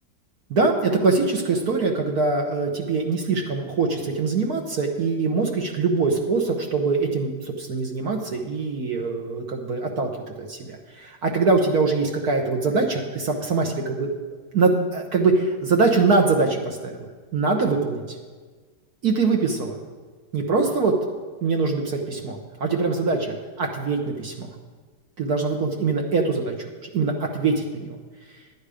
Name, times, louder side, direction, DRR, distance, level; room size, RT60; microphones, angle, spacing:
voice 1, 0.5-10.1 10.4-14.1 14.5-18.0 19.0-19.8 20.3-20.9 21.4-24.5 25.2-27.9, right 4 dB, 65° right, 1 dB, 1.5 m, -23 dB
11.5 x 9.5 x 4.9 m, 1.4 s
omnidirectional pair, 1.9 m